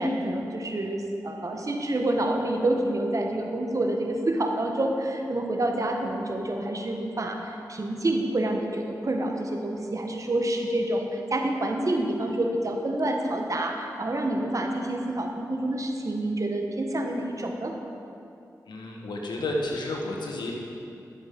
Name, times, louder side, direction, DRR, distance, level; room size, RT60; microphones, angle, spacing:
voice 1, 0.0-17.7, right 1 dB, 45° right, 2 dB, 1.4 m, -28 dB
voice 2, 18.7-20.5, left 2 dB, 85° left, 0 dB, 1.4 m, -31 dB
11.0 x 7.3 x 5.3 m, 2.7 s
cardioid pair, 40°, 7 cm